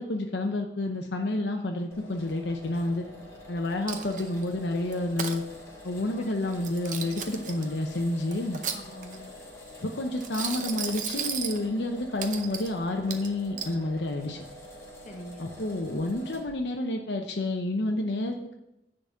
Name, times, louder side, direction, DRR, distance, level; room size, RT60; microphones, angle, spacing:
voice 1, 0.0-3.0 3.5-5.4 5.8-8.6 9.8-14.4 15.4-18.6, left 2 dB, 70° left, 3 dB, 0.8 m, -29 dB
sound 1, 1.9-16.6, left 1 dB, 15° left, 2.2 m, -47 dB
Coin (dropping), 3.9-4.4 4.9-5.4 6.5-7.6 8.3-9.2 10.2-11.6 12.2-12.7 13.1-13.7, right 7 dB, 45° right, 0.7 m, -35 dB
voice 2, 6.2-6.6 7.0-7.8 8.7-9.3 15.0-15.5, equal, 40° left, 3 dB, 1.2 m, -46 dB
10.0 x 4.0 x 7.1 m, 0.87 s
head